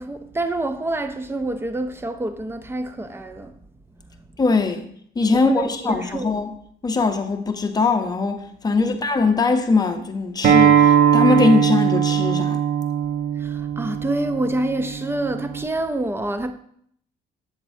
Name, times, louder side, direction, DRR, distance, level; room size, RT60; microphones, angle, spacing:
voice 1, 0.0-3.5 5.3-6.3 8.7-9.0 13.4-16.5, right 2 dB, 15° right, 0.5 m, -27 dB
voice 2, 4.4-4.9 5.2-6.5 6.8-12.6, left 3 dB, 20° left, 0.7 m, -21 dB
Acoustic guitar, 10.4-15.6, right 8 dB, 50° right, 0.8 m, -19 dB
7.5 x 7.3 x 2.7 m
cardioid pair, 125°, 19 cm